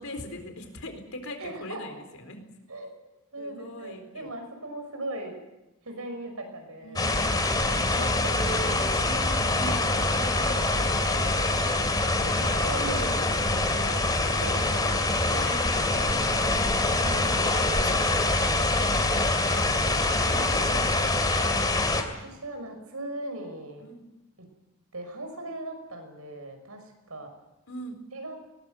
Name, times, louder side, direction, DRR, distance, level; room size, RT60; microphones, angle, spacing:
voice 1, 0.0-2.4 3.3-4.3 6.8-7.4 8.2-8.4 8.7-11.7 12.4-14.9 15.2-16.1 16.5-16.9 20.1-21.7 23.8-24.0 27.7-28.0, equal, 75° left, 6 dB, 4.1 m, -42 dB
voice 2, 1.4-2.0 2.7-3.0 3.3-5.4 5.8-7.0 7.9-8.3 12.1-13.2 14.4-15.6 15.8-16.2 17.0-18.5 22.2-23.8 24.9-27.3 28.1-28.4, right 1 dB, 80° right, 5 dB, 5.9 m, -39 dB
sound 1, 7.0-22.0, left 2 dB, 20° left, 2.4 m, -25 dB
21.0 x 19.5 x 8.0 m, 1.0 s
head